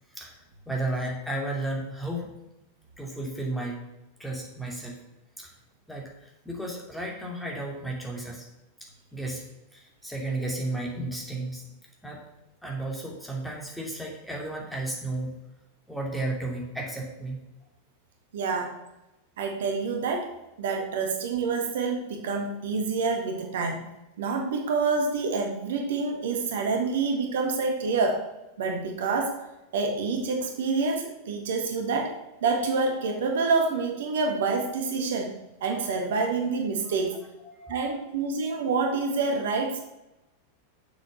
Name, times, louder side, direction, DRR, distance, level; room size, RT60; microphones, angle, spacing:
voice 1, 0.7-2.3 3.0-3.8 4.2-5.0 5.4-5.5 5.9-8.5 8.8-9.5 9.7-11.7 12.0-12.2 12.6-15.4 15.9-17.4 36.8-36.9 37.4-38.0, right 2 dB, ahead, -2 dB, 2.7 m, -33 dB
voice 2, 18.3-18.8 19.4-23.8 24.2-28.3 28.6-29.4 29.7-32.2 32.4-37.2 37.7-39.8, right 4 dB, 60° right, 3 dB, 1.6 m, -27 dB
7.3 x 7.1 x 6.9 m, 0.94 s
figure-of-eight pair, 90°, 0 cm